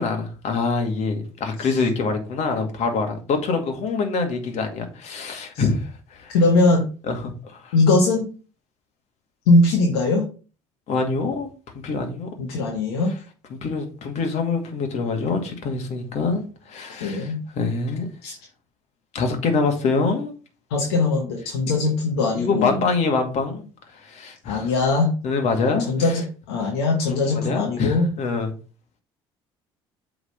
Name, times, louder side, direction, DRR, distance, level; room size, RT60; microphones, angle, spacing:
voice 1, 0.0-6.3 7.1-7.7 10.9-11.5 11.7-12.3 13.5-18.1 19.1-20.3 22.3-23.7 24.0-24.7 25.2-25.9 27.1-28.5, left 4 dB, 55° left, 2.2 m, -25 dB
voice 2, 6.3-6.8 7.7-8.3 9.5-10.3 12.4-13.1 16.9-17.4 18.2-18.4 20.7-22.8 24.4-25.2 25.8-28.1, left 2 dB, 80° left, 1.3 m, -20 dB
8.0 x 4.0 x 5.3 m
hypercardioid pair, 65°, 13 cm